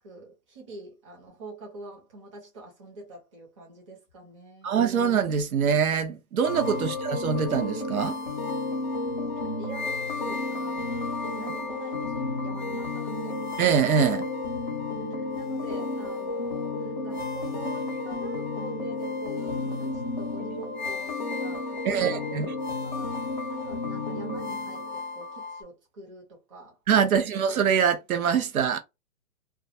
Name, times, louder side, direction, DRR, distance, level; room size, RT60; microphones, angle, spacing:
voice 1, 0.0-5.0 9.2-13.4 15.0-22.4 22.8-23.2 23.5-26.8 27.1-27.4, right 2 dB, 20° right, 0.7 m, -45 dB
voice 2, 4.6-8.2 13.6-14.2 21.8-22.5 26.9-28.8, right 7 dB, 70° right, 0.7 m, -24 dB
sound 1, 6.4-25.6, left 3 dB, 35° left, 0.4 m, -32 dB
2.3 x 2.2 x 2.5 m
hypercardioid pair, 165°, 44 cm